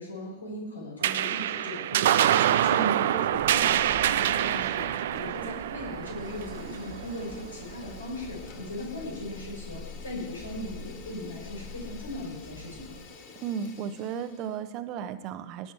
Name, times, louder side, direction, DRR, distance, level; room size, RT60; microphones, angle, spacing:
voice 1, 0.0-13.0, left 1 dB, 80° left, -2 dB, 4.6 m, -38 dB
sound 1, 1.0-7.8, right 11 dB, 60° right, 0.5 m, -26 dB
voice 2, 2.7-3.1 13.4-15.7, right 7 dB, 40° right, 11 dB, 1.0 m, -34 dB
sound 2, 3.2-13.1, left 4 dB, 25° left, 3.4 m, -46 dB
Fire, 5.0-5.5 5.8-14.6, left 4 dB, 45° left, 2.4 m, -50 dB
18.5 x 8.8 x 4.6 m, 1.1 s
figure-of-eight pair, 90°, 0 cm